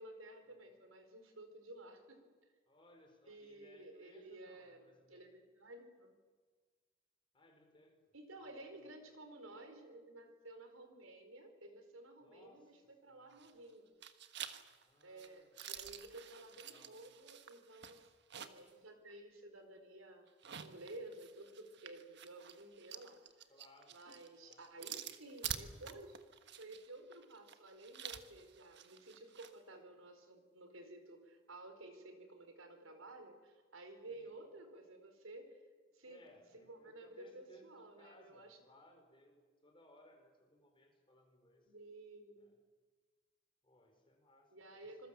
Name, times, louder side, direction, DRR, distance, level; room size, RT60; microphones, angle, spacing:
voice 1, 0.0-2.2 3.3-6.1 8.1-13.9 15.0-18.1 18.4-20.3 20.6-23.2 23.9-26.2 26.6-35.6 35.9-36.2 36.5-38.6 41.7-42.5 44.5-45.1, right 2 dB, 90° right, 7 dB, 4.3 m, -54 dB
voice 2, 2.7-5.4 7.3-8.0 8.4-8.9 12.2-12.8 13.1-13.4 14.8-15.6 16.4-17.0 23.5-24.0 24.4-24.6 34.0-34.3 36.0-41.7 42.4-42.5 43.6-45.1, left 1 dB, 25° left, 3 dB, 4.8 m, -65 dB
sound 1, 13.3-13.7 14.0-18.7 19.1-19.2 20.3-29.5, right 9 dB, 55° right, 1.4 m, -49 dB
26.0 x 22.0 x 7.5 m, 1.5 s
head